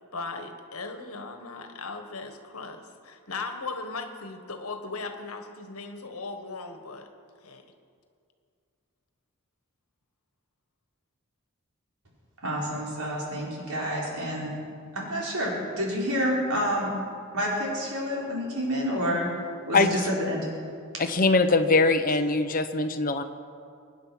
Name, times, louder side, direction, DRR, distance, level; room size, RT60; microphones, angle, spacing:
voice 1, 0.1-7.1 7.4-7.6, left 3 dB, 75° left, 6 dB, 1.5 m, -37 dB
voice 2, 12.4-14.6 14.9-16.9 17.3-19.3 19.7-20.5, equal, 85° right, -3 dB, 4.4 m, -28 dB
voice 3, 19.7-20.0 21.0-23.2, left 3 dB, 40° left, 7 dB, 0.9 m, -22 dB
24.0 x 9.7 x 6.0 m, 2.4 s
head